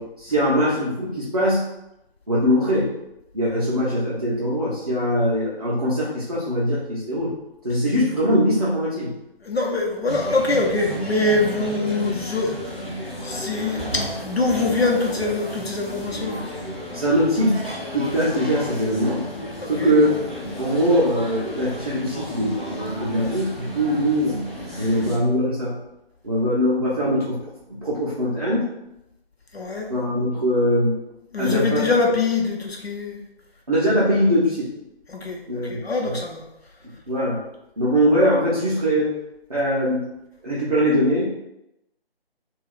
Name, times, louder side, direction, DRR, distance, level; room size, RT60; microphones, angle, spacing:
voice 1, 0.0-1.6 2.3-2.9 3.3-7.3 7.6-9.1 16.9-17.6 17.9-19.2 19.7-20.2 20.6-24.4 24.8-25.8 26.2-27.4 27.7-28.7 29.9-31.0 31.4-31.9 33.7-34.7 35.5-36.2 37.1-37.4 37.8-39.1 39.5-40.1 40.4-41.3, equal, 40° right, -8 dB, 0.5 m, -21 dB
voice 2, 9.4-12.5 13.2-16.4 19.6-19.9 24.7-24.9 29.5-29.9 31.3-33.2 35.1-36.4, left 3 dB, 80° left, 0 dB, 0.8 m, -24 dB
sound 1, 10.1-25.2, equal, ahead, 0.7 m, -33 dB
2.4 x 2.3 x 3.6 m, 0.87 s
figure-of-eight pair, 155°, 31 cm